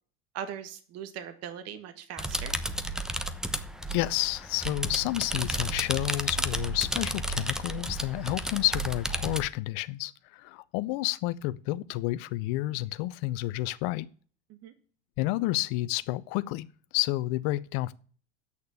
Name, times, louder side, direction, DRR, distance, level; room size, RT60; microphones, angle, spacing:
voice 1, 0.3-2.6 14.5-14.7, right 9 dB, 50° right, 1.7 m, -40 dB
sound 1, 2.2-9.5, right 1 dB, ahead, 0.9 m, -32 dB
voice 2, 3.9-14.1 15.2-16.7 16.9-17.9, left 18 dB, 65° left, 0.7 m, -30 dB
8.5 x 6.6 x 8.2 m
supercardioid pair, 110°, 32 cm